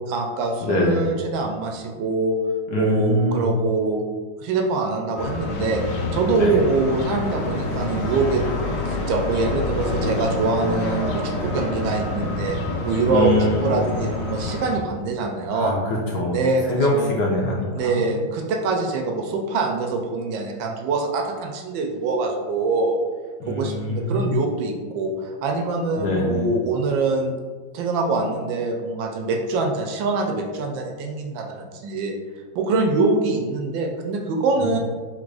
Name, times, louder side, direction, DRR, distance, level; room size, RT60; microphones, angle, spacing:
voice 1, 0.1-2.4 2.7-4.0 4.4-5.8 6.1-8.5 8.9-12.6 12.8-15.7 16.3-17.2 17.7-23.0 23.5-27.3 27.7-32.1 32.5-34.8, right 3 dB, 75° right, 2 dB, 1.3 m, -24 dB
voice 2, 0.6-1.0 2.7-3.5 6.3-6.6 13.1-13.9 15.5-16.4 16.6-18.0 23.4-24.3 26.0-26.5 34.6-34.7, left 1 dB, 70° left, -2 dB, 1.1 m, -23 dB
sound 1, 5.2-14.8, left 2 dB, 90° left, 1.6 m, -27 dB
3.8 x 2.5 x 4.6 m, 1.5 s
omnidirectional pair, 2.2 m